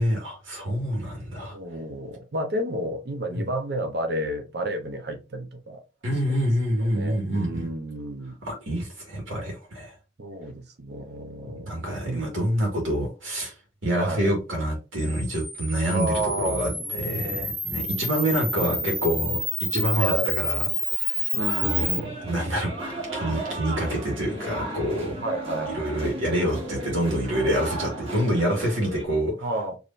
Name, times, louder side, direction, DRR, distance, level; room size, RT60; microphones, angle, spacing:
voice 1, 0.0-1.6 3.3-3.4 6.0-7.7 8.4-9.9 11.7-13.5 13.8-19.4 19.7-20.6 21.0-21.3 21.6-22.7 23.1-25.2 25.7-29.4, equal, 85° right, 2.2 m, -27 dB
voice 2, 1.5-5.8 6.3-6.5 6.8-8.4 10.2-12.2 13.9-14.3 15.9-17.5 18.5-18.9 19.9-20.3 21.3-22.2 25.2-25.8 29.4-29.8, right 1 dB, 55° right, 0.9 m, -31 dB
Camera, 15.0-22.0, left 1 dB, ahead, 0.4 m, -29 dB
sound 1, 21.4-29.0, right 1 dB, 30° right, 1.8 m, -35 dB
4.9 x 3.3 x 2.6 m
head